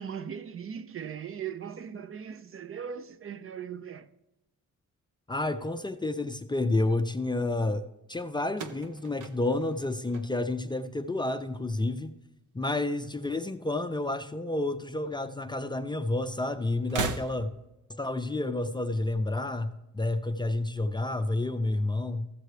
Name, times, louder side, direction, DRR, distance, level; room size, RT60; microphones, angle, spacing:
voice 1, 0.0-4.1, right 8 dB, 45° right, 0.5 m, -39 dB
voice 2, 5.3-12.1 12.5-17.5 17.9-22.3, left 2 dB, 15° left, 0.4 m, -30 dB
sound 1, 8.5-10.8 11.1-11.7 12.8-13.8 14.1-14.2 15.3-15.4 16.8-17.8, right 4 dB, 90° right, 0.8 m, -38 dB
14.0 x 7.8 x 3.2 m
wide cardioid pair, 160°, 30 cm